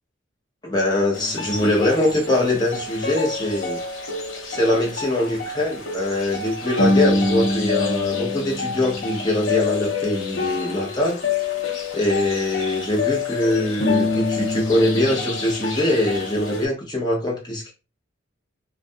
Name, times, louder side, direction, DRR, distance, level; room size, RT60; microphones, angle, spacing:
voice 1, 0.6-3.8 4.5-11.2 11.9-17.7, left 1 dB, 20° left, -2 dB, 0.7 m, -22 dB
sound 1, 1.1-16.7, left 3 dB, 70° left, 0.7 m, -26 dB
2.4 x 2.2 x 2.6 m, 0.30 s
head